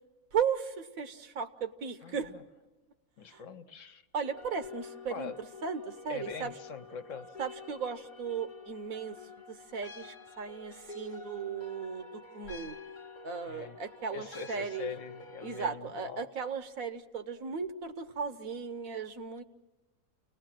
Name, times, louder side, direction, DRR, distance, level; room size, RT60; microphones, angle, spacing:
voice 1, 0.3-2.3 3.3-3.4 4.1-5.3 5.6-6.5 7.4-12.8 13.2-14.9 15.4-19.4, right 6 dB, 75° right, 9 dB, 1.5 m, -36 dB
voice 2, 2.0-2.4 3.2-4.0 5.1-5.4 6.1-7.4 13.4-13.8 14.1-16.3, left 5 dB, 65° left, 8 dB, 1.3 m, -43 dB
sound 1, 4.2-15.7, left 3 dB, 40° left, 1.0 m, -49 dB
29.5 x 19.0 x 7.6 m, 1.2 s
omnidirectional pair, 1.5 m